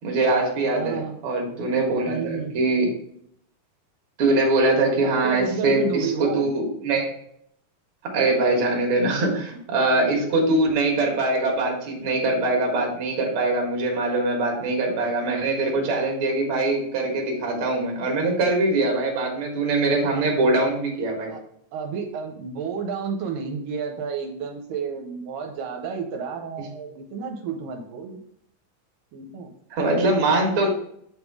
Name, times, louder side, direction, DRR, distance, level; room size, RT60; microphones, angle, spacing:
voice 1, 0.0-2.9 4.2-7.1 8.1-21.3 29.7-30.7, right 2 dB, 50° right, 0 dB, 1.9 m, -22 dB
voice 2, 0.6-1.2 2.0-2.5 5.0-6.5 21.3-21.4 21.7-28.2 29.1-29.5, right 6 dB, 80° right, 3 dB, 2.3 m, -31 dB
7.5 x 3.6 x 4.7 m, 0.70 s
omnidirectional pair, 4.0 m